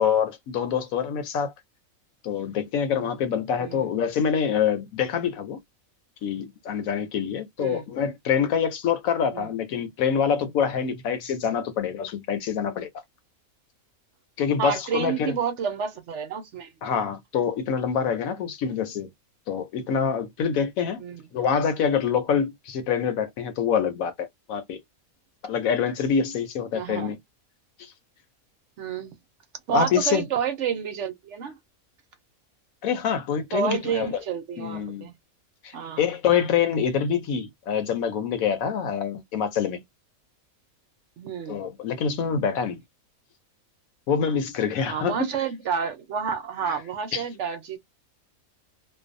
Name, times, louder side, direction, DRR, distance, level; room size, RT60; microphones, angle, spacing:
voice 1, 0.0-1.5 2.2-5.6 6.2-12.9 14.4-15.4 16.8-19.1 19.5-21.0 21.3-24.8 25.4-27.2 27.8-27.9 29.7-30.2 32.8-34.1 34.6-35.1 35.6-39.8 41.5-42.8 44.1-45.3 47.1-47.2, left 7 dB, 75° left, 1.1 m, -26 dB
voice 2, 3.6-3.9 7.6-7.8 9.3-9.5 14.6-16.7 21.0-21.2 26.7-27.1 28.8-29.2 29.7-31.5 33.5-35.1 35.7-36.0 41.2-41.6 44.9-47.8, right 7 dB, 65° right, 0.9 m, -29 dB
2.5 x 2.3 x 2.5 m
omnidirectional pair, 1.5 m